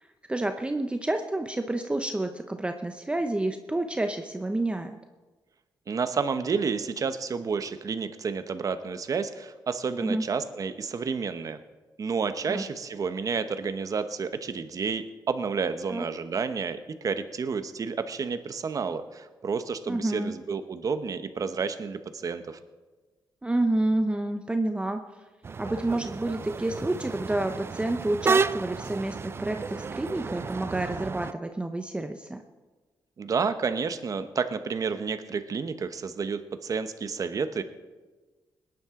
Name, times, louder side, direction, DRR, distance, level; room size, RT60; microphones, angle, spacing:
voice 1, 0.3-5.0 10.0-10.2 12.5-12.6 15.9-16.0 19.9-20.3 23.4-25.0 25.6-32.4, right 2 dB, 15° right, 6 dB, 0.7 m, -29 dB
voice 2, 5.9-11.6 12.0-22.6 33.2-37.6, right 5 dB, 50° right, 10 dB, 0.9 m, -30 dB
sound 1, 25.4-31.3, right 5 dB, 35° right, 0.3 m, -31 dB
20.0 x 10.5 x 3.7 m, 1.3 s
cardioid pair, 85°, 8 cm